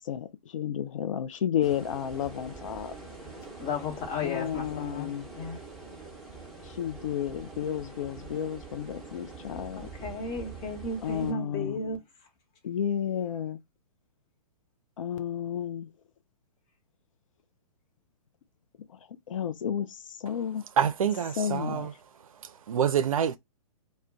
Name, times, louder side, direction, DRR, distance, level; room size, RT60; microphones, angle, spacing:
voice 1, 0.0-3.0 4.2-5.3 6.6-9.9 11.0-11.8 12.6-13.6 15.0-15.9 18.9-19.0 19.3-20.7 21.3-21.9, left 9 dB, 60° left, 0.4 m, -32 dB
sound 1, 1.6-11.3, right 4 dB, ahead, 0.8 m, -45 dB
voice 2, 3.6-5.1 5.4-5.6 10.0-12.0, left 3 dB, 30° left, 1.0 m, -33 dB
voice 3, 20.8-21.9 22.7-23.4, right 8 dB, 65° right, 0.5 m, -26 dB
2.2 x 2.1 x 3.7 m
figure-of-eight pair, 120°, 19 cm